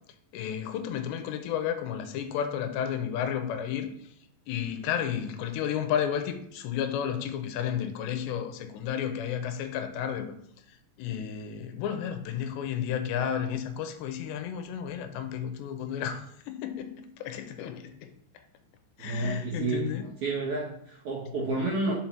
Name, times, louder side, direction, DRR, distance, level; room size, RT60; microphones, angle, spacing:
voice 1, 0.3-3.9 4.5-10.3 11.0-18.1 19.0-20.1, left 9 dB, 85° left, 2.9 m, -32 dB
voice 2, 19.0-19.9 20.2-21.9, right 2 dB, 60° right, 2.1 m, -30 dB
5.9 x 5.2 x 5.9 m
omnidirectional pair, 5.0 m